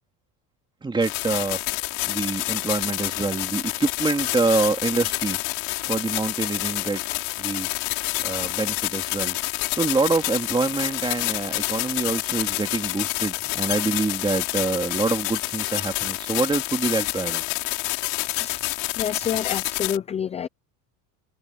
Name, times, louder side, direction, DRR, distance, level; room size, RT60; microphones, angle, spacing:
voice 1, 0.8-1.6 2.1-5.4 5.8-7.7 8.2-9.4 9.7-17.4, right 3 dB, 10° right, 2.6 m, -26 dB
sound 1, 1.0-20.0, left 27 dB, 80° left, 4.1 m, -28 dB
voice 2, 18.3-18.6 18.9-20.5, left 8 dB, 15° left, 0.4 m, -28 dB
cardioid pair, 150°, 41 cm